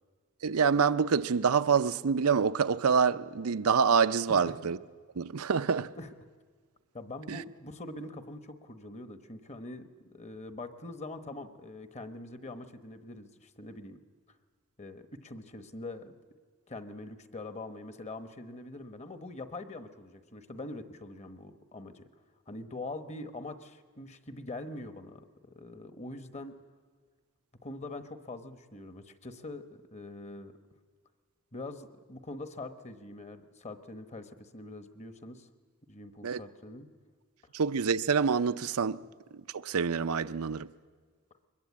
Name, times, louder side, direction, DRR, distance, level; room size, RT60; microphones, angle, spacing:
voice 1, 0.4-4.8 5.2-5.9 7.3-7.4 36.2-36.4 37.5-39.0 39.5-40.7, right 6 dB, 90° right, 0.6 m, -26 dB
voice 2, 6.9-14.0 14.8-16.1 16.7-22.1 22.5-26.5 27.6-30.5 31.5-35.5 35.9-36.9, left 2 dB, 30° left, 1.1 m, -43 dB
22.5 x 20.5 x 8.4 m
head